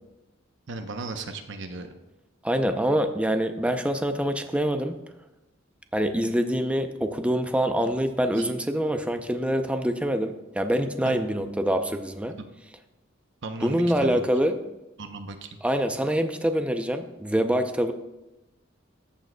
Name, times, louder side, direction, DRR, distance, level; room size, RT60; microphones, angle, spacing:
voice 1, 0.7-1.9 8.3-8.4 11.0-11.2 13.4-14.2 15.0-15.5, right 3 dB, 65° right, 7 dB, 0.7 m, -36 dB
voice 2, 2.4-5.0 5.9-12.4 13.6-14.6 15.6-17.9, equal, 5° right, 7 dB, 0.5 m, -25 dB
14.0 x 7.3 x 2.2 m, 1.0 s
head